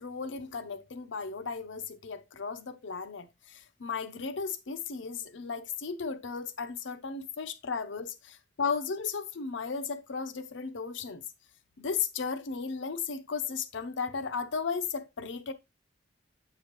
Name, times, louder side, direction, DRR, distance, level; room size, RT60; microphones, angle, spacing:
voice 1, 0.0-11.2 11.8-15.5, left 5 dB, 85° left, 0.7 m, -35 dB
8.0 x 4.9 x 3.0 m
head